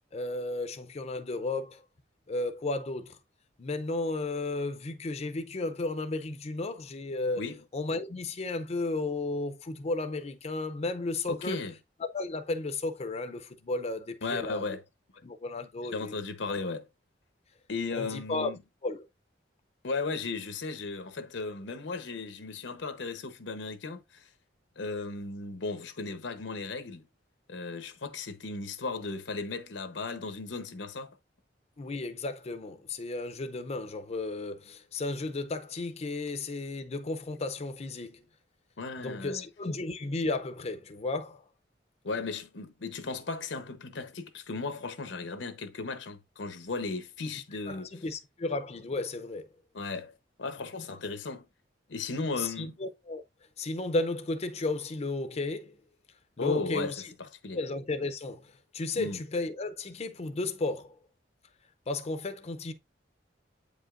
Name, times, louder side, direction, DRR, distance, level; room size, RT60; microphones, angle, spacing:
voice 1, 0.1-1.8 2.3-3.2 3.6-7.4 7.7-11.6 12.0-14.6 15.2-16.2 17.9-18.5 18.8-19.1 31.8-38.2 39.0-41.4 47.7-49.5 52.4-53.2 53.6-55.8 56.4-57.1 57.5-61.0 61.9-62.7, left 2 dB, 35° left, 0.5 m, -33 dB
voice 2, 11.3-11.8 14.2-14.8 15.8-16.9 17.7-18.6 19.8-24.3 24.8-27.1 27.5-31.2 38.8-39.4 42.0-47.9 49.7-50.1 50.4-51.4 51.9-52.8 56.4-57.6 59.0-59.2, left 3 dB, 85° left, 0.9 m, -36 dB
8.1 x 5.1 x 2.4 m
head